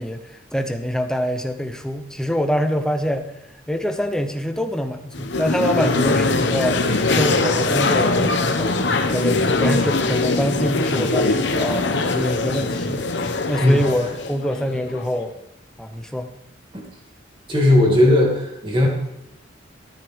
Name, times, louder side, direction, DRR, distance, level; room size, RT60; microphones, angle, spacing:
voice 1, 0.0-3.3 3.7-8.8 9.1-15.3 15.8-16.4, equal, 5° left, 6 dB, 0.7 m, -25 dB
sound 1, 5.1-15.2, left 3 dB, 70° left, 1.0 m, -21 dB
voice 2, 17.5-18.9, left 1 dB, 25° right, -1 dB, 2.4 m, -16 dB
13.5 x 11.0 x 3.6 m, 0.90 s
head